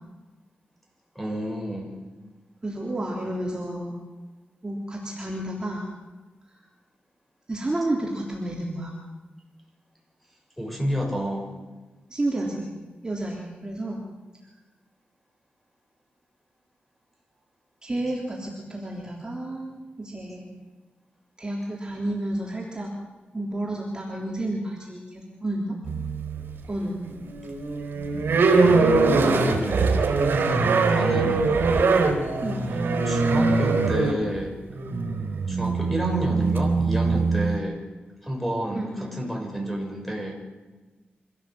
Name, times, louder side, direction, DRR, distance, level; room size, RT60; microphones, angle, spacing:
voice 1, 1.1-2.0 10.6-11.5 29.2-30.0 30.9-31.5 32.7-34.6 35.5-37.8 38.2-40.3, equal, 5° left, 1 dB, 6.4 m, -30 dB
voice 2, 2.6-3.9 4.6-5.9 6.5-6.6 7.5-8.9 12.1-12.7 13.0-14.1 17.8-20.5 21.4-22.9 23.3-25.8 26.7-27.0 32.4-32.7 38.7-39.2, right 1 dB, 20° right, -2 dB, 3.5 m, -31 dB
sound 1, 25.8-26.6 27.0-37.6, right 4 dB, 75° right, 3.9 m, -22 dB
25.5 x 16.5 x 7.9 m, 1.2 s
wide cardioid pair, 130°, 4 cm